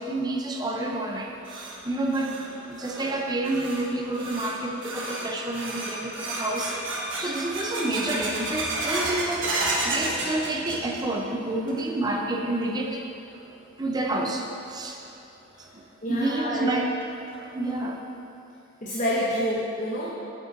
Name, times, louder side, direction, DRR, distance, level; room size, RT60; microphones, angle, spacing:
voice 1, 0.0-2.4 2.7-6.8 7.2-13.0 13.8-15.0 15.6-15.8 16.1-16.9 17.5-18.0 20.1-20.2, right 2 dB, 20° right, 1 dB, 0.7 m, -29 dB
sound 1, 1.1-11.2 11.5-12.1 12.5-12.6 13.3-13.4 15.0-15.1 15.6-15.7 16.1-16.2 16.7-16.8 17.3-17.7, right 2 dB, 70° right, 1.3 m, -32 dB
voice 2, 16.0-16.7 18.8-20.1, equal, 40° left, -6 dB, 1.0 m, -27 dB
8.4 x 7.7 x 4.0 m, 2.8 s
head